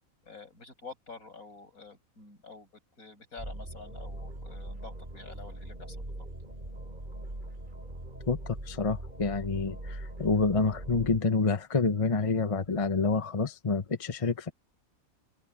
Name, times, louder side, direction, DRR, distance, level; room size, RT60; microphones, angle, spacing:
voice 1, 0.2-2.7 3.0-6.0, left 4 dB, 85° left, 8.2 m, -48 dB
sound 1, 3.4-11.2, right 1 dB, 35° right, 4.6 m, -41 dB
voice 2, 8.3-14.5, left 4 dB, 25° left, 1.1 m, -28 dB
omnidirectional pair, 1.5 m